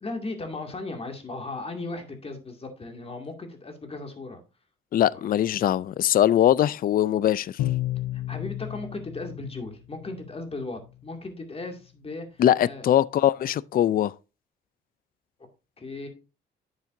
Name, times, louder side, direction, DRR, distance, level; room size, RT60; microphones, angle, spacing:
voice 1, 0.0-4.4 5.1-5.2 8.1-12.9 15.8-16.1, left 2 dB, 30° left, 2.3 m, -36 dB
voice 2, 4.9-7.5 12.4-14.1, left 11 dB, 45° left, 0.4 m, -21 dB
Bowed string instrument, 7.6-10.4, left 15 dB, 80° left, 0.7 m, -32 dB
9.5 x 7.3 x 2.6 m
cardioid pair, 90°, 20 cm